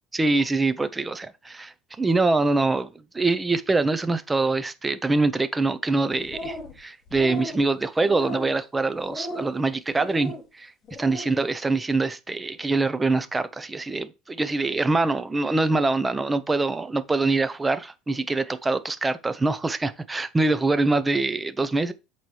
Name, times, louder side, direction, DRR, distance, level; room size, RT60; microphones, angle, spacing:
voice 1, 0.1-10.7 11.0-21.9, right 3 dB, 15° right, 0.6 m, -24 dB
sound 1, 6.1-6.8 7.1-7.6 8.0-8.6 9.1-9.6 10.0-10.4 10.8-11.3, left 1 dB, 30° left, 2.0 m, -36 dB
7.8 x 4.2 x 3.1 m
supercardioid pair, 125°, 0 cm